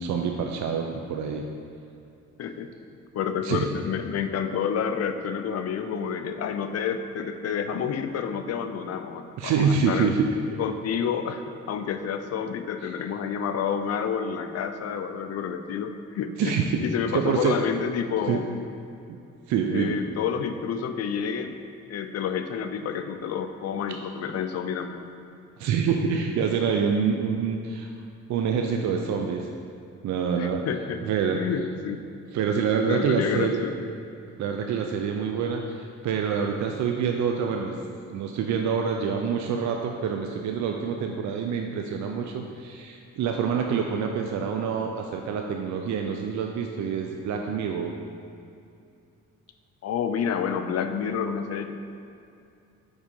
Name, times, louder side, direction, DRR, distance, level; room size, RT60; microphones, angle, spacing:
voice 1, 0.0-1.5 3.4-3.7 9.4-10.3 12.8-12.9 16.4-16.8 17.1-17.6 18.3-18.4 19.1-19.2 19.5-20.0 25.6-27.9 28.3-29.5 30.0-30.6 31.0-31.4 32.3-33.6 34.4-37.8 38.1-47.9, right 6 dB, 70° right, 3 dB, 0.5 m, -26 dB
voice 2, 2.4-2.7 3.1-10.1 10.6-16.5 16.8-18.5 19.7-21.5 21.9-25.0 30.4-31.0 31.3-32.0 32.9-33.8 49.8-51.7, left 7 dB, 55° left, 8 dB, 0.5 m, -29 dB
5.2 x 4.7 x 5.3 m, 2.5 s
cardioid pair, 90°, 30 cm